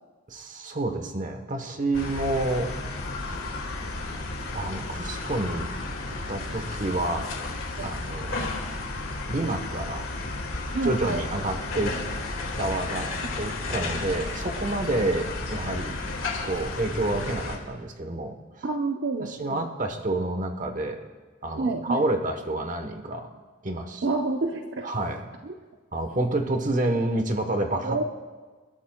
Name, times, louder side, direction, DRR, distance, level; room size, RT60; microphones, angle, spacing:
voice 1, 0.3-2.7 4.5-5.7 6.3-7.3 7.8-8.5 9.3-10.1 10.8-12.0 12.6-13.1 13.4-16.0 16.4-18.6 19.2-21.0 21.4-23.3 23.6-24.0 24.8-25.2 25.9-28.0, right 2 dB, 40° right, 5 dB, 1.1 m, -28 dB
sound 1, 1.9-17.6, left 2 dB, 80° left, 2.1 m, -33 dB
voice 2, 10.7-11.2 18.6-19.7 21.6-22.0 24.0-24.9 25.5-25.6 27.8-28.0, right 3 dB, 60° right, 3 dB, 0.7 m, -28 dB
28.5 x 12.5 x 2.3 m, 1.4 s
head